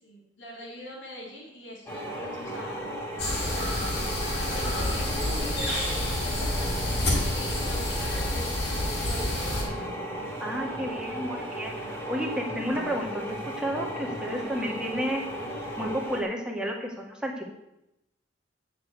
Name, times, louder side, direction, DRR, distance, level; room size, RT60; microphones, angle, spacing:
voice 1, 0.0-2.8 3.2-4.0 4.4-9.8, equal, 75° left, -2 dB, 3.4 m, -43 dB
sound 1, 1.9-16.2, equal, 15° left, 2.8 m, -35 dB
sound 2, 3.2-9.6, left 1 dB, 55° left, 4.6 m, -29 dB
voice 2, 10.4-13.2 13.6-15.3 15.8-17.5, equal, 5° right, -1 dB, 2.0 m, -31 dB
10.5 x 6.8 x 8.2 m, 0.88 s
head